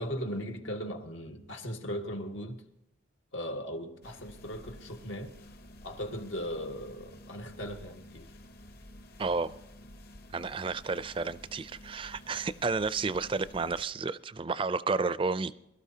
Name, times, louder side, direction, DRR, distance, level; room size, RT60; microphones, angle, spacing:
voice 1, 0.0-2.6 3.3-5.3 5.8-8.3, equal, 85° left, 1.7 m, -38 dB
sound 1, 4.0-13.8, left 1 dB, 50° left, 0.9 m, -51 dB
voice 2, 9.2-9.6 10.3-15.5, right 4 dB, 25° right, 0.4 m, -31 dB
22.0 x 12.5 x 2.8 m
head